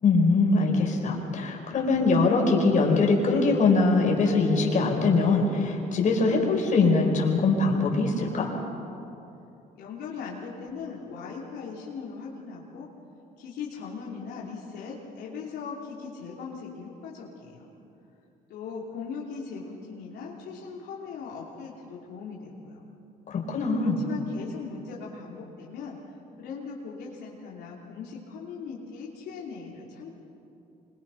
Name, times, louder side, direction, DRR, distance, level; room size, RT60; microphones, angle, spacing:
voice 1, 0.0-8.5 23.3-24.0, left 3 dB, 45° left, 0 dB, 4.7 m, -22 dB
voice 2, 9.7-12.9 13.4-17.7 18.5-22.9 23.8-26.0 26.4-30.1, left 5 dB, 80° left, -4 dB, 3.3 m, -39 dB
25.5 x 22.5 x 5.8 m, 2.8 s
cardioid pair, 110°, 17 cm